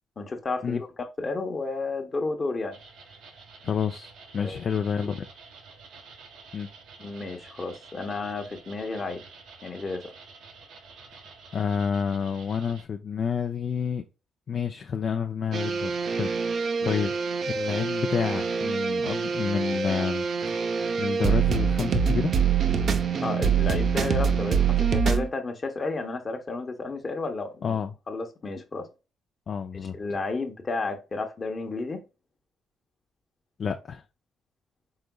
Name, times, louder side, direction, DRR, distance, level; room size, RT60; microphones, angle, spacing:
voice 1, 0.2-2.8 4.4-4.6 5.0-5.1 7.0-9.2 9.6-10.1 16.8-17.0 23.2-27.8 28.1-28.9 29.9-32.0, left 3 dB, 35° left, 1.0 m, -32 dB
sound 1, 2.7-12.8, right 4 dB, 80° right, 1.2 m, -49 dB
voice 2, 3.6-5.2 6.5-6.7 11.5-14.0 14.5-17.1 17.5-20.3 21.0-22.3 27.6-27.9 29.5-30.0 33.6-34.0, left 7 dB, 50° left, 0.4 m, -29 dB
sound 2, 15.5-25.3, right 6 dB, 55° right, 0.6 m, -25 dB
4.9 x 3.8 x 2.3 m
cardioid pair, 90°, 0 cm